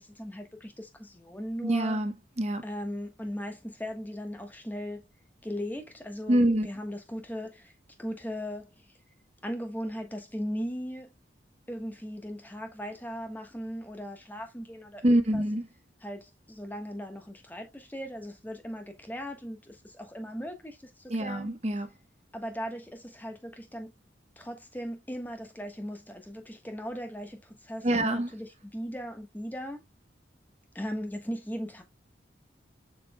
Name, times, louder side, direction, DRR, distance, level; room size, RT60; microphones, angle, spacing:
voice 1, 0.0-2.0 2.6-5.0 5.4-7.7 8.0-8.7 9.4-11.1 11.7-15.4 16.0-21.5 22.3-23.9 24.4-29.8 30.7-31.8, equal, 10° left, 1.2 m, -38 dB
voice 2, 1.6-2.6 6.3-6.7 15.0-15.6 21.1-21.9 27.8-28.3, right 1 dB, 35° right, 1.0 m, -25 dB
7.2 x 5.9 x 2.2 m
head